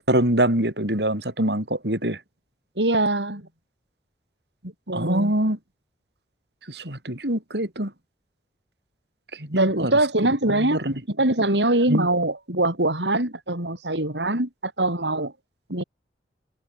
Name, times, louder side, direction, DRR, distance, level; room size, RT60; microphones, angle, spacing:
voice 1, 0.1-2.2 4.9-5.6 6.7-7.9 9.4-9.9 10.5-10.9 11.9-12.1, right 1 dB, 75° right, 7.1 m, -24 dB
voice 2, 2.8-3.5 4.6-5.3 9.5-10.8 11.1-15.3 15.7-15.8, right 2 dB, 90° right, 6.9 m, -23 dB
head